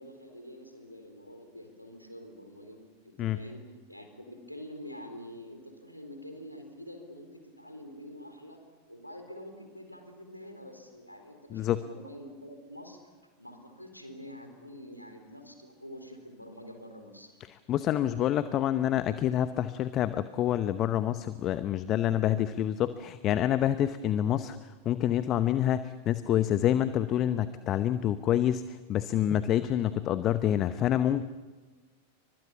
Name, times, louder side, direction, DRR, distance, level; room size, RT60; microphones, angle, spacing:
voice 1, 0.0-2.8 3.0-3.6 3.9-8.6 8.9-13.0 13.4-17.3, equal, 90° left, 5 dB, 4.1 m, -46 dB
voice 2, 17.7-31.2, left 11 dB, 35° left, 13 dB, 0.9 m, -27 dB
29.5 x 25.0 x 7.1 m, 1.4 s
figure-of-eight pair, 90°, 0 cm